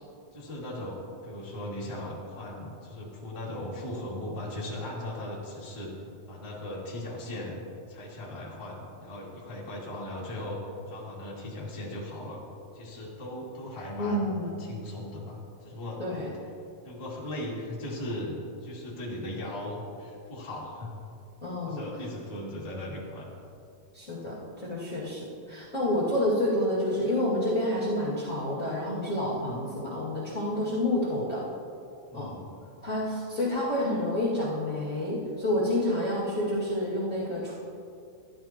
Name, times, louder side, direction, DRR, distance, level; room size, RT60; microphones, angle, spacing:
voice 1, 0.3-5.9 6.3-7.6 7.9-10.6 10.9-12.4 12.7-16.3 16.8-20.9 21.6-23.4 32.1-32.6, left 1 dB, 10° left, -7 dB, 1.6 m, -38 dB
voice 2, 14.0-14.5 16.0-16.3 21.4-21.9 23.9-31.4 32.1-32.3 32.8-37.5, left 1 dB, 30° left, -8 dB, 1.8 m, -29 dB
14.5 x 12.0 x 3.0 m, 2.5 s
omnidirectional pair, 4.5 m